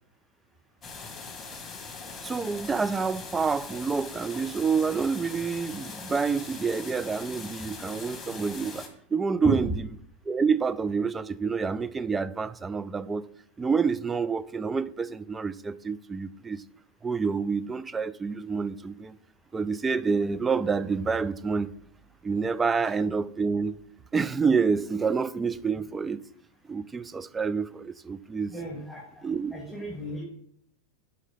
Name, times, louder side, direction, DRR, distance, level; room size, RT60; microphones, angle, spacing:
sound 1, 0.8-8.9, left 4 dB, 20° left, 1.4 m, -41 dB
voice 1, 2.2-9.7 10.3-13.3 13.6-16.6 17.0-19.2 19.5-21.7 22.2-23.8 24.1-26.2 26.7-28.6 29.2-29.5, right 5 dB, 15° right, 0.3 m, -28 dB
voice 2, 28.5-29.0 29.5-30.3, equal, ahead, 2.1 m, -33 dB
5.3 x 4.9 x 5.5 m
hypercardioid pair, 95°, 0 cm